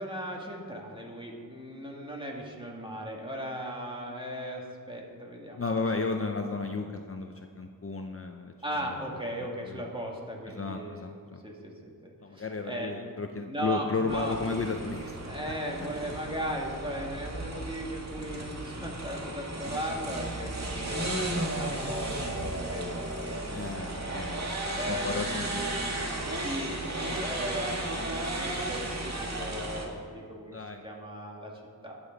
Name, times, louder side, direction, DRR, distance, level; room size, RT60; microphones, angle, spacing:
voice 1, 0.0-5.6 8.6-11.1 11.4-13.0 13.5-14.3 15.2-21.2 21.6-24.1 24.7-30.6 30.8-31.5 31.8-32.0, equal, 15° right, -2 dB, 2.3 m, -37 dB
voice 2, 5.6-8.5 8.8-9.0 9.6-9.9 10.5-11.4 12.2-15.5 15.8-15.9 23.5-25.8 30.5-30.8, left 4 dB, 40° left, 4 dB, 0.7 m, -34 dB
sound 1, 14.1-29.9, right 1 dB, 50° right, 1.8 m, -34 dB
20.0 x 7.1 x 4.0 m, 2.2 s
wide cardioid pair, 80°, 36 cm